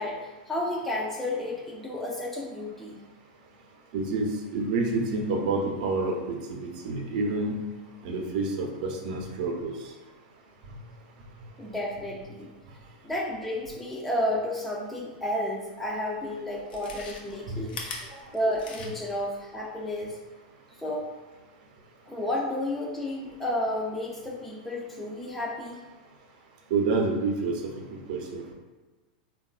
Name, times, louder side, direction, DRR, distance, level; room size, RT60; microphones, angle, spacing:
voice 1, 0.0-3.0 11.6-12.5 13.0-17.8 18.1-20.2 20.8-21.1 22.1-25.8, left 1 dB, 5° left, -4 dB, 0.4 m, -31 dB
voice 2, 3.9-7.5 8.0-9.7 17.5-17.7 26.7-27.6 28.1-28.5, right 3 dB, 60° right, 2 dB, 0.6 m, -28 dB
Chewing mastication, 15.8-15.9 16.6-19.2 19.6-19.7, left 3 dB, 75° left, 0.6 m, -40 dB
3.6 x 2.3 x 2.3 m, 1.2 s
supercardioid pair, 140°, 5 cm